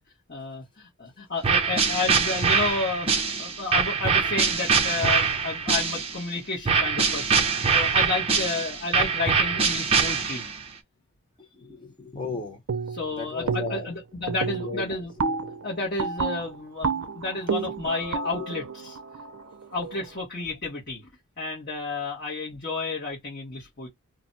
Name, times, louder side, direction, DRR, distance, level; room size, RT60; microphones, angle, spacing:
voice 1, 0.3-10.4 12.9-15.1 15.6-19.0 19.7-21.1 21.4-23.9, left 3 dB, 45° left, 1.1 m, -31 dB
sound 1, 1.4-6.2 6.7-10.6, right 5 dB, 25° right, 0.6 m, -23 dB
voice 2, 11.4-12.6 13.2-13.9 14.6-15.0 17.5-17.6 18.3-18.4, left 3 dB, 20° left, 0.9 m, -35 dB
sound 2, 12.7-13.1 13.5-14.0 14.3-20.1, right 5 dB, 65° right, 0.5 m, -30 dB
2.5 x 2.2 x 3.9 m
head